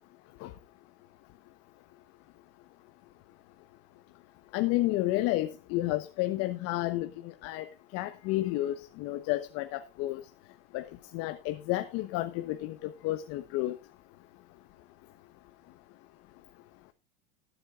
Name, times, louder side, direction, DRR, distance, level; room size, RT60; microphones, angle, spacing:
voice 1, 4.5-7.7 7.9-10.2 10.7-10.8 11.1-13.8, left 16 dB, 50° left, 1.2 m, -31 dB
20.0 x 8.6 x 2.5 m
supercardioid pair, 120°, 30 cm